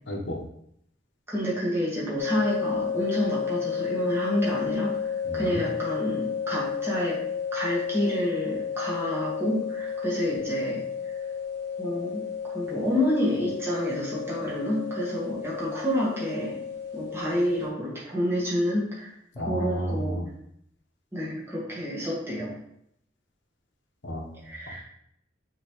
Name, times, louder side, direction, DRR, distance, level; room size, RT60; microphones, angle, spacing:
voice 1, 0.1-0.4 5.2-5.6 19.3-20.3 24.0-24.4, equal, 80° left, 1 dB, 1.2 m, -32 dB
voice 2, 1.3-7.2 7.5-11.3 11.8-16.6 16.9-20.3 21.1-22.6 24.4-24.8, equal, 15° right, -7 dB, 1.9 m, -29 dB
sound 1, 2.2-17.7, left 7 dB, 55° right, 1.1 m, -32 dB
8.5 x 3.8 x 3.2 m, 0.73 s
head